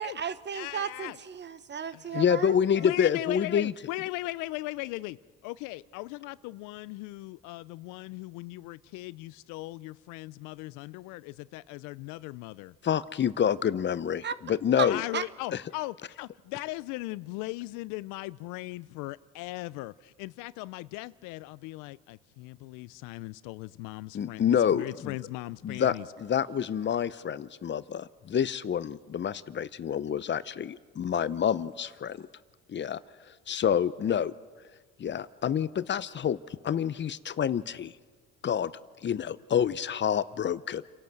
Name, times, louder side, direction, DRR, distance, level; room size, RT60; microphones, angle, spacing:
voice 1, 0.0-2.6 14.2-14.4 14.8-15.2, right 7 dB, 35° right, 1.1 m, -34 dB
voice 2, 0.5-1.2 1.9-2.2 2.8-12.8 14.9-26.1, left 20 dB, 75° left, 0.6 m, -38 dB
voice 3, 2.1-3.7 12.8-15.0 15.5-15.6 24.1-25.1 25.6-32.3 32.7-33.0 33.5-34.3 35.0-36.4 36.6-37.9 38.4-38.7 39.0-40.8, left 8 dB, 35° left, 0.7 m, -28 dB
29.0 x 12.0 x 7.9 m
supercardioid pair, 80°, 31 cm